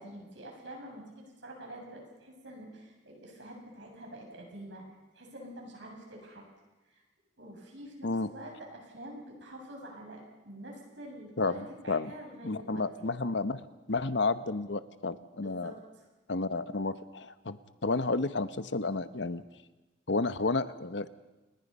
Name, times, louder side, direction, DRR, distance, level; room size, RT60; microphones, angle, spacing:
voice 1, 0.0-4.8 5.1-6.4 6.8-7.0 7.4-12.9 15.4-16.0, right 1 dB, 80° right, 0 dB, 7.4 m, -47 dB
voice 2, 12.4-13.6 13.9-15.7 16.3-17.6 17.8-19.4 20.1-21.1, left 3 dB, 70° left, 13 dB, 1.0 m, -31 dB
29.0 x 20.5 x 5.5 m, 1.1 s
head